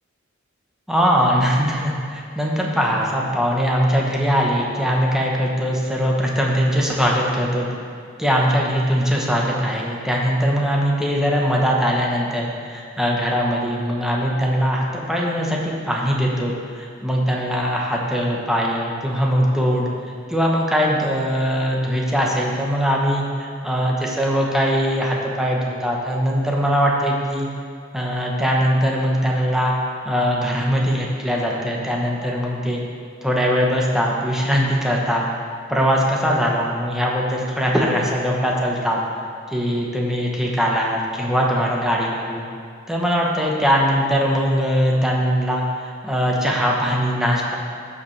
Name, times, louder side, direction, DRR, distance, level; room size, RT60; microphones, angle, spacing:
voice 1, 0.9-7.7 8.2-19.9 20.3-27.5 27.9-29.7 30.0-32.8 33.2-35.3 35.7-39.0 39.5-42.5 42.9-47.5, equal, 5° right, -3 dB, 1.0 m, -21 dB
14.5 x 4.9 x 3.2 m, 2.2 s
head